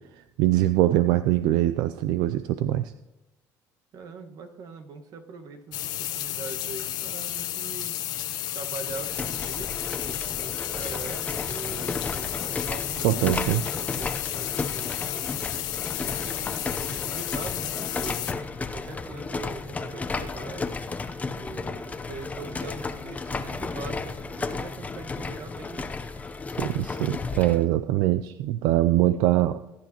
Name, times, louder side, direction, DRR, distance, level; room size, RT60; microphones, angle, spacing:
voice 1, 0.4-2.9 13.0-13.6 26.6-29.6, right 14 dB, 85° right, 12 dB, 0.4 m, -23 dB
voice 2, 3.9-7.9 8.5-15.4 15.9-20.7 21.3-25.9, right 4 dB, 60° right, 5 dB, 1.6 m, -42 dB
sound 1, 5.7-18.3, left 13 dB, 70° left, 0.8 m, -32 dB
sound 2, 8.8-27.6, left 4 dB, 20° left, 0.8 m, -33 dB
20.0 x 10.5 x 3.0 m, 1.0 s
cardioid pair, 115°, 7 cm